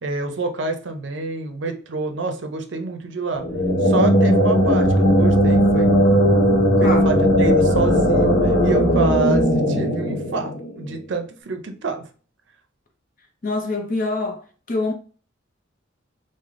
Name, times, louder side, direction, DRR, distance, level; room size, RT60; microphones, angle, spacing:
voice 1, 0.0-3.4 3.8-5.9 6.8-12.0, right 3 dB, 65° right, 0.5 m, -27 dB
sound 1, 3.3-11.0, equal, 85° left, 1.0 m, -17 dB
voice 2, 6.8-7.1 13.4-14.4 14.7-14.9, left 2 dB, 45° left, 0.7 m, -25 dB
3.3 x 2.1 x 3.6 m
head